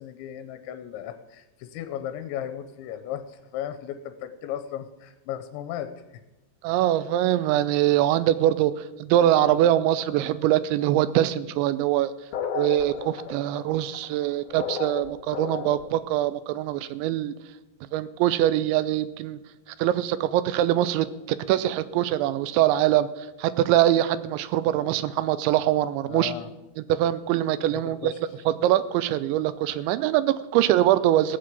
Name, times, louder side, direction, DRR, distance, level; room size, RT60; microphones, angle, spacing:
voice 1, 0.0-6.2 26.1-26.5 27.7-28.2, left 10 dB, 90° left, 9 dB, 3.1 m, -36 dB
voice 2, 6.6-12.1 12.5-17.3 17.9-19.4 19.8-23.1 23.4-26.3 26.9-28.1 28.5-31.4, right 13 dB, 85° right, 14 dB, 3.0 m, -23 dB
sound 1, 12.3-16.0, left 7 dB, 70° left, 1.9 m, -33 dB
16.5 x 7.7 x 8.3 m, 1.0 s
omnidirectional pair, 5.3 m